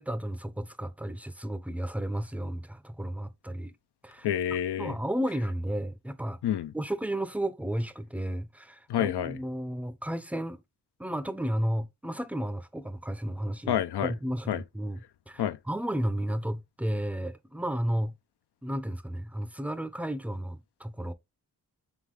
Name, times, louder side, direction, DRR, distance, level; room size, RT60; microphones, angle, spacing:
voice 1, 0.0-3.7 4.0-4.3 4.8-6.4 6.7-10.6 11.0-18.1 18.6-21.1, right 1 dB, 5° right, 0.5 m, -33 dB
voice 2, 4.2-4.9 6.4-6.7 8.9-9.4 13.7-14.1 14.5-14.6 15.4-15.6, left 10 dB, 75° left, 0.5 m, -28 dB
3.7 x 3.6 x 3.1 m
cardioid pair, 50°, 40 cm